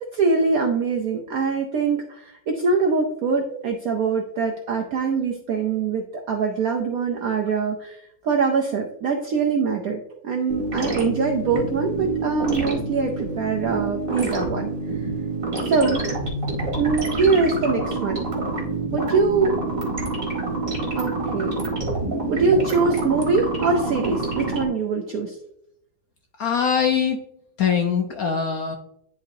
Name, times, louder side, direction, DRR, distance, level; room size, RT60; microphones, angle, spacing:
voice 1, 0.1-15.1 15.6-16.0 16.8-18.2 18.9-19.5 21.0-21.6 22.3-25.4, right 4 dB, 70° right, 2 dB, 0.8 m, -23 dB
sound 1, 10.5-24.7, right 2 dB, 30° right, 1.5 m, -27 dB
voice 2, 26.4-27.2 27.6-28.8, left 7 dB, 65° left, 3 dB, 0.9 m, -22 dB
10.5 x 3.7 x 2.7 m, 0.79 s
omnidirectional pair, 2.2 m